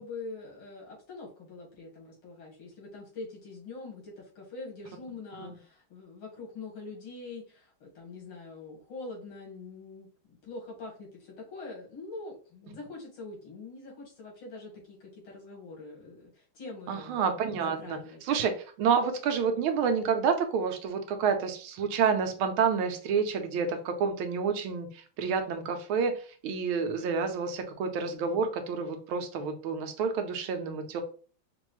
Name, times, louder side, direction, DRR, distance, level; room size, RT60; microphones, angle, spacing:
voice 1, 0.0-17.2 17.6-18.2, left 3 dB, 85° left, -2 dB, 2.6 m, -44 dB
voice 2, 16.9-18.5 18.8-31.0, right 6 dB, 80° right, 6 dB, 1.5 m, -29 dB
5.3 x 2.5 x 3.0 m, 0.40 s
omnidirectional pair, 2.3 m